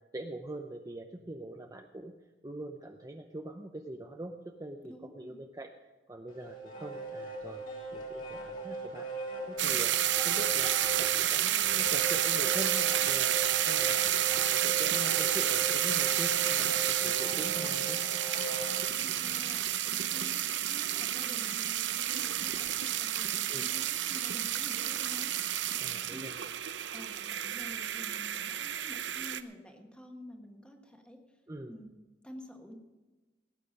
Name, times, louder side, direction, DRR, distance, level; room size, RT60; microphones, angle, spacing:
voice 1, 0.1-2.1 2.4-4.3 4.6-5.7 6.1-7.6 7.9-9.1 9.5-10.0 10.2-13.3 13.6-14.0 14.3-18.0 23.5-23.7 25.8-26.4 31.5-31.7, right 1 dB, 20° right, 3 dB, 0.6 m, -43 dB
voice 2, 4.8-5.4 19.0-25.4 26.1-26.2 26.9-31.2 31.7-31.9 32.2-32.7, equal, 5° left, 3 dB, 1.5 m, -49 dB
sound 1, 6.3-18.9, right 2 dB, 45° left, 2.8 m, -39 dB
sound 2, 9.6-29.4, right 12 dB, 75° right, 0.6 m, -30 dB
18.0 x 9.1 x 5.3 m, 1.2 s
head